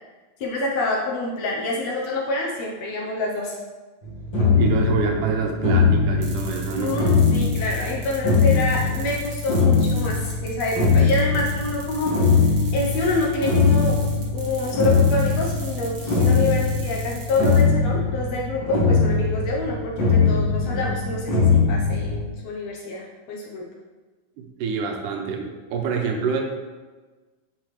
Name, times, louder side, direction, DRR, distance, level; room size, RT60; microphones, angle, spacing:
voice 1, 0.4-3.6 6.8-12.4 12.7-14.0 14.3-23.6, left 2 dB, 70° left, -2 dB, 1.7 m, -27 dB
sound 1, 4.0-22.3, left 4 dB, 40° left, 2.0 m, -21 dB
voice 2, 4.5-7.0 24.4-26.4, right 5 dB, 75° right, 2 dB, 2.2 m, -26 dB
sound 2, 6.2-17.6, right 3 dB, 60° right, 1.3 m, -42 dB
8.6 x 4.9 x 3.2 m, 1.3 s
omnidirectional pair, 4.0 m